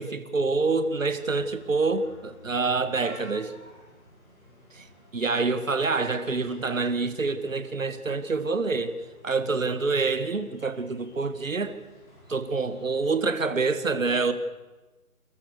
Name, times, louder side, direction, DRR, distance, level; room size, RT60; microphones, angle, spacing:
voice 1, 0.0-3.5 4.7-4.9 5.1-8.9 9.2-11.7 12.3-14.3, right 4 dB, 60° right, 11 dB, 2.0 m, -26 dB
sound 1, 0.6-13.2, left 1 dB, 30° left, 7.9 m, -52 dB
29.0 x 13.5 x 6.7 m, 1.2 s
figure-of-eight pair, 165°, 44 cm